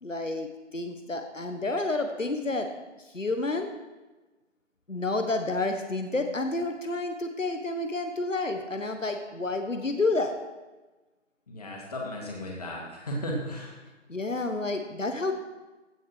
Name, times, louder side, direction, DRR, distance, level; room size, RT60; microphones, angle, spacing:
voice 1, 0.0-2.7 3.0-3.7 4.9-10.4 14.1-15.3, left 2 dB, 85° left, 5 dB, 1.3 m, -30 dB
voice 2, 11.5-13.8, equal, 30° left, -2 dB, 2.4 m, -35 dB
15.5 x 6.0 x 4.7 m, 1.2 s
figure-of-eight pair, 155°, 37 cm